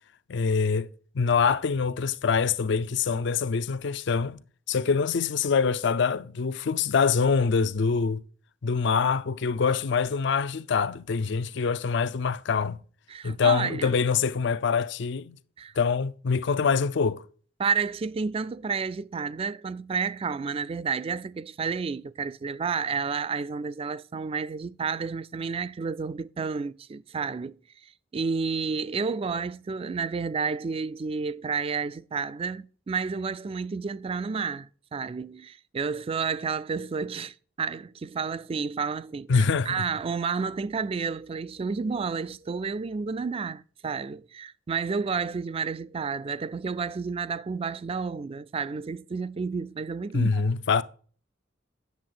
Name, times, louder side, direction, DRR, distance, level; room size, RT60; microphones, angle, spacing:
voice 1, 0.3-0.9 1.1-4.4 4.7-8.2 8.6-12.8 13.2-15.4 15.8-17.2 39.3-39.8 50.1-50.8, left 5 dB, 65° left, 0.5 m, -25 dB
voice 2, 13.1-13.9 15.6-15.7 17.6-27.6 28.1-50.5, right 5 dB, 30° right, 0.3 m, -31 dB
9.4 x 7.0 x 3.8 m
head